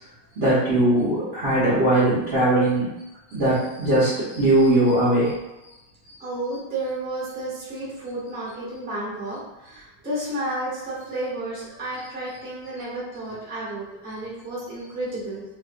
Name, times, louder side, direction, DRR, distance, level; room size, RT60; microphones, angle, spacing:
voice 1, 0.4-2.9 3.3-5.3, right 1 dB, 55° right, -11 dB, 0.7 m, -20 dB
voice 2, 6.2-15.4, right 1 dB, 10° right, -8 dB, 0.4 m, -32 dB
3.0 x 2.9 x 2.4 m, 0.99 s
omnidirectional pair, 2.2 m